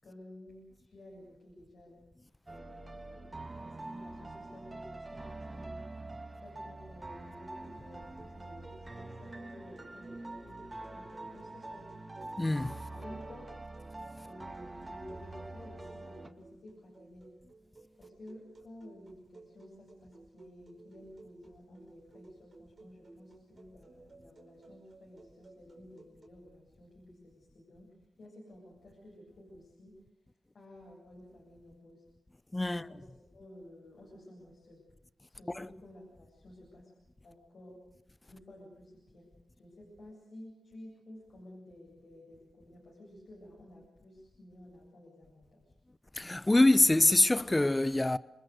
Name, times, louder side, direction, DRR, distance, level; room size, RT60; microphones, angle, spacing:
voice 1, 0.0-2.0 2.5-5.8 6.4-11.9 12.9-13.5 14.2-17.3 18.0-30.0 30.5-32.0 32.7-34.8 35.3-36.9 37.2-37.8 38.3-39.3 39.5-45.7, left 1 dB, 60° left, 7.8 m, -53 dB
sound 1, 2.5-16.3, right 2 dB, 30° right, 2.3 m, -45 dB
sound 2, 7.6-26.3, right 3 dB, 45° right, 4.8 m, -58 dB
voice 2, 12.4-12.8 32.5-32.8 35.6-35.7 46.2-48.2, left 2 dB, 20° left, 0.9 m, -25 dB
28.5 x 21.0 x 6.7 m
supercardioid pair, 40°, 0 cm